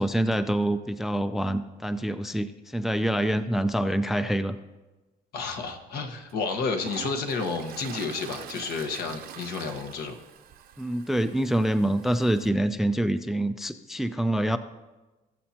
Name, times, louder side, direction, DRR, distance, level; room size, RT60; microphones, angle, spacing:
voice 1, 0.0-4.6 10.8-14.6, right 1 dB, ahead, 11 dB, 0.3 m, -26 dB
voice 2, 5.3-10.2, left 4 dB, 65° left, 4 dB, 1.3 m, -31 dB
Toilet flush, 5.6-5.7 6.3-12.5, right 9 dB, 65° right, 0.7 m, -44 dB
19.5 x 7.5 x 2.9 m, 1.2 s
cardioid pair, 110°, 17 cm